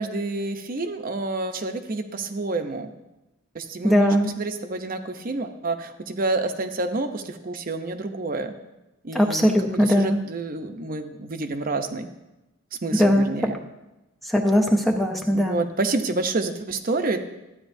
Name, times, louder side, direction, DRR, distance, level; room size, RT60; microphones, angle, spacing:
voice 1, 0.0-2.9 3.5-8.5 9.0-9.5 9.8-12.1 12.8-13.6 15.3-17.2, right 2 dB, 40° right, 6 dB, 0.7 m, -28 dB
voice 2, 3.8-4.3 9.1-10.2 12.9-13.5 14.3-15.6, equal, ahead, 2 dB, 0.5 m, -20 dB
13.5 x 9.5 x 2.6 m, 0.98 s
head